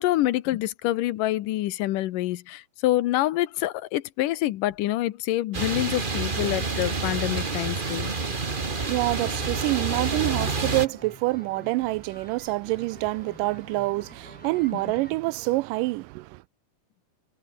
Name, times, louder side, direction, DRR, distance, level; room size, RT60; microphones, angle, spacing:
voice 1, 0.0-8.1 14.7-14.8, left 15 dB, 80° left, 2.5 m, -26 dB
sound 1, 5.5-10.9, right 4 dB, 35° right, 0.8 m, -28 dB
voice 2, 8.2-16.4, right 21 dB, 85° right, 2.1 m, -27 dB
sound 2, 9.1-15.1, equal, ahead, 5.7 m, -49 dB
omnidirectional pair, 3.8 m